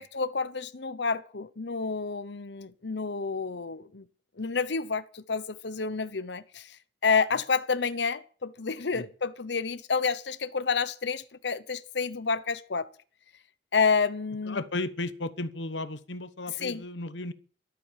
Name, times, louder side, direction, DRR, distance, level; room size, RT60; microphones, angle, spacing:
voice 1, 0.0-4.0 4.4-6.8 7.0-12.9 13.7-14.6 16.6-16.8, left 5 dB, 70° left, 0.9 m, -29 dB
voice 2, 14.5-17.3, left 2 dB, 90° left, 1.2 m, -34 dB
13.0 x 13.0 x 7.4 m
head